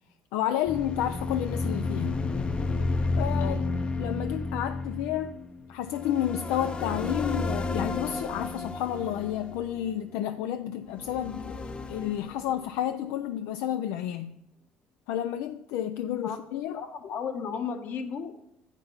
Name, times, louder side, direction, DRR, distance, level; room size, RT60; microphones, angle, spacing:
voice 1, 0.3-2.2 3.2-3.6 4.0-5.4 5.7-14.4 15.1-16.8, left 11 dB, 80° left, 0.4 m, -31 dB
Sci-fi Epic Bladerunner, 0.6-10.2 10.9-13.0, left 3 dB, 25° left, 0.6 m, -32 dB
voice 2, 3.4-3.7 16.2-16.4 16.7-18.4, left 6 dB, 60° left, 1.2 m, -34 dB
7.7 x 6.1 x 5.4 m
supercardioid pair, 90°, 4 cm